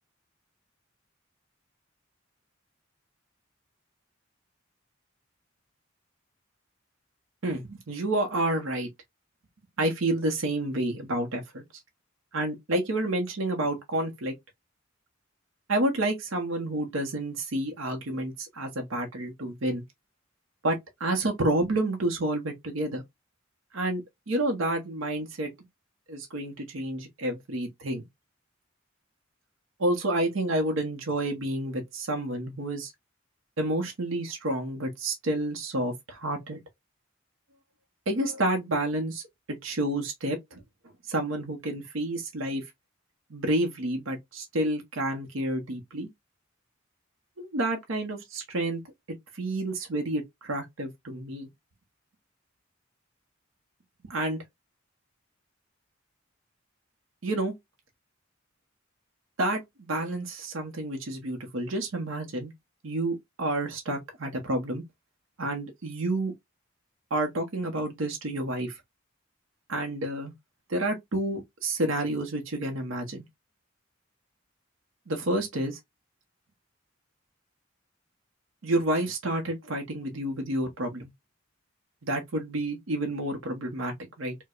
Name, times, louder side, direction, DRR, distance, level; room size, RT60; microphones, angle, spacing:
voice 1, 7.4-8.9 9.8-11.6 12.3-14.3 15.7-19.8 20.6-23.0 23.7-24.0 24.3-25.5 26.1-28.1 29.8-32.9 33.6-36.6 38.1-39.2 39.5-40.6 41.1-42.6 43.3-46.1 47.4-48.8 49.3-51.5 54.0-54.4 57.2-57.5 59.4-62.5 62.8-64.8 65.4-66.3 67.1-68.8 69.7-70.3 70.7-73.2 75.1-75.8 78.6-81.1 82.0-84.4, right 1 dB, 85° right, 0.8 m, -29 dB
4.5 x 2.2 x 2.3 m
head